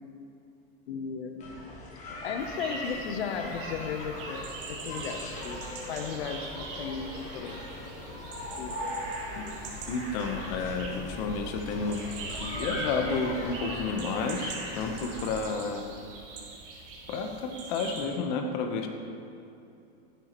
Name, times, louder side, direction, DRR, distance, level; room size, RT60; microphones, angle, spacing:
voice 1, 0.9-1.6 2.2-7.6 8.5-8.8, left 6 dB, 80° left, 6 dB, 0.9 m, -36 dB
sound 1, 1.4-15.4, left 1 dB, 25° left, 1.5 m, -39 dB
sound 2, 2.4-18.0, right 3 dB, 55° right, 2.7 m, -42 dB
voice 2, 9.9-12.0 12.4-15.8 17.1-18.9, left 4 dB, 45° left, 4 dB, 1.0 m, -31 dB
14.5 x 9.2 x 3.0 m, 2.7 s
supercardioid pair, 165°, 31 cm